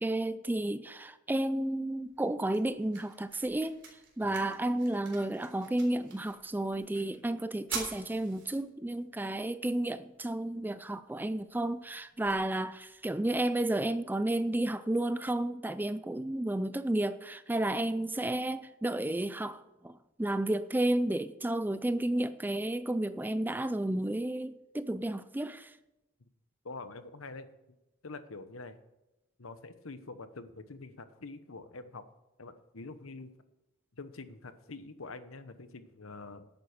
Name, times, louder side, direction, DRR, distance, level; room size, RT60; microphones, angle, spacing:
voice 1, 0.0-3.8 4.2-25.7, right 1 dB, 10° right, 0.4 m, -32 dB
sound 1, 1.9-13.9, right 5 dB, 60° right, 3.7 m, -48 dB
voice 2, 26.6-27.5 28.0-28.8 29.4-32.0 32.4-33.3 33.9-36.5, left 3 dB, 75° left, 1.0 m, -45 dB
10.5 x 9.1 x 6.5 m
head